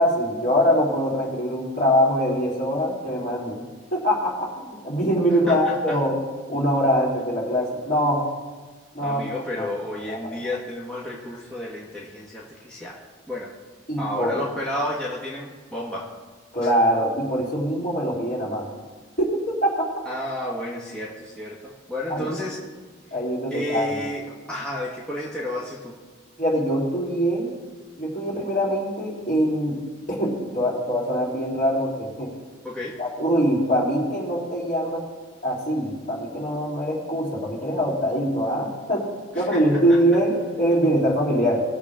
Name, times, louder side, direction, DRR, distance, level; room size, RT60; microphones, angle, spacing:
voice 1, 0.0-3.6 3.9-6.2 6.5-8.2 8.9-9.2 9.6-9.7 10.1-10.4 13.9-14.4 16.5-18.7 19.2-19.9 22.1-22.3 23.1-24.1 26.4-27.5 28.0-29.7 30.1-32.3 33.0-35.0 35.4-39.0 39.3-41.6, equal, 40° left, -5 dB, 3.8 m, -23 dB
voice 2, 5.5-6.0 9.0-13.0 13.3-13.5 14.0-16.1 16.6-16.7 20.1-22.6 23.5-24.2 24.5-25.9 32.6-32.9 39.4-39.6, left 1 dB, 5° left, -7 dB, 1.7 m, -31 dB
20.0 x 7.5 x 3.7 m, 1.4 s
head